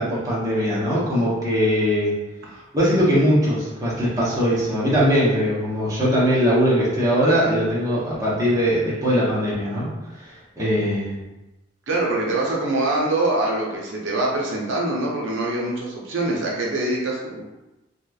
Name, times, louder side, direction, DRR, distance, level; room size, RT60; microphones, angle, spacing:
voice 1, 0.0-2.1 2.7-9.9 10.2-10.3 10.6-11.2, equal, 20° right, -8 dB, 0.7 m, -20 dB
voice 2, 11.9-17.4, right 2 dB, 80° right, -3 dB, 0.6 m, -24 dB
2.9 x 2.3 x 2.3 m, 1.0 s
head